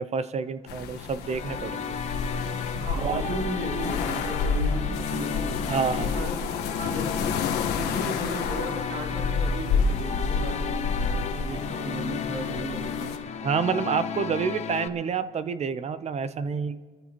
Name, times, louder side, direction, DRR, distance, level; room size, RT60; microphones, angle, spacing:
voice 1, 0.0-2.0 3.0-3.2 5.7-6.1 13.4-16.8, right 6 dB, 40° right, 13 dB, 0.6 m, -28 dB
sound 1, 0.7-13.2, left 5 dB, 80° left, 1.3 m, -30 dB
sound 2, 1.2-14.9, left 7 dB, 40° left, 0.8 m, -34 dB
voice 2, 2.7-6.4 6.8-13.3, right 2 dB, 75° right, -2 dB, 3.2 m, -36 dB
24.5 x 13.5 x 3.0 m, 1.5 s
cardioid pair, 110°, 17 cm